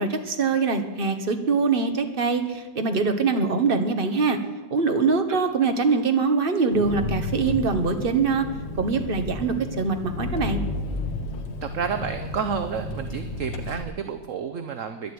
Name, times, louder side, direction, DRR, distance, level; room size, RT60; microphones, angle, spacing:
voice 1, 0.0-4.4 4.7-8.4 8.8-10.6, right 4 dB, 35° right, 7 dB, 1.4 m, -23 dB
Engine, 6.7-13.8, left 2 dB, 90° left, 1.9 m, -32 dB
voice 2, 11.6-15.1, right 6 dB, 55° right, 8 dB, 1.0 m, -30 dB
11.0 x 11.0 x 9.5 m, 1.2 s
omnidirectional pair, 2.0 m